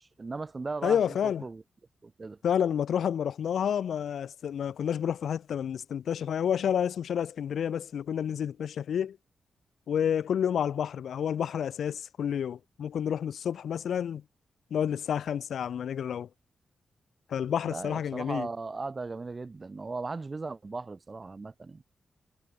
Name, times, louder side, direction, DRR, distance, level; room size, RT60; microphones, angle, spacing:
voice 1, 0.0-1.6 2.0-2.4 17.6-21.8, right 3 dB, 25° right, 5.1 m, -37 dB
voice 2, 0.8-1.4 2.4-9.2 9.9-14.2 14.7-16.3 17.3-18.5, left 8 dB, 85° left, 1.4 m, -29 dB
wide cardioid pair, 150°, 0 cm